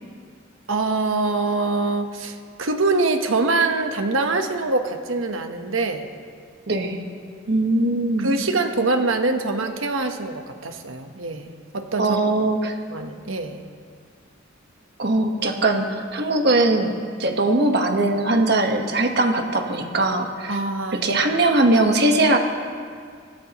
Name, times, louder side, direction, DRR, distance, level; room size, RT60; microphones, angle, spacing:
voice 1, 0.7-6.1 8.2-12.2 12.9-13.6 20.5-21.1, right 3 dB, 85° right, 6 dB, 1.2 m, -24 dB
voice 2, 6.7-7.1 7.5-8.3 12.0-12.7 15.0-16.9 17.2-20.6 20.9-22.4, right 2 dB, 55° right, 4 dB, 1.3 m, -20 dB
25.5 x 13.0 x 3.0 m, 2.1 s
head